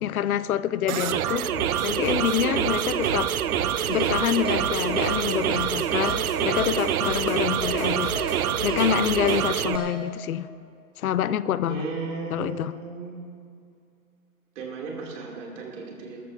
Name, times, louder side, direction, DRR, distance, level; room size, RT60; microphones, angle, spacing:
voice 1, 0.0-1.5 1.8-3.3 3.9-8.1 8.6-10.5 11.0-11.9 12.3-12.8, left 10 dB, 70° left, 16 dB, 0.7 m, -26 dB
sound 1, 0.9-9.8, right 10 dB, 70° right, 0.7 m, -26 dB
sound 2, 1.5-9.4, left 3 dB, 85° left, 3.1 m, -38 dB
Keyboard (musical), 3.9-4.1 4.5-4.6 5.0-5.1 5.5-5.6 6.0-6.2 6.6-6.7 7.1-7.2 7.6-7.8 8.2-8.3 8.7-8.8 9.2-9.4 9.8-9.9, right 2 dB, 10° right, 1.6 m, -34 dB
voice 2, 11.7-13.2 14.6-16.2, right 4 dB, 55° right, -1 dB, 2.7 m, -35 dB
22.0 x 13.5 x 2.6 m, 2.4 s
hypercardioid pair, 140°, 45 cm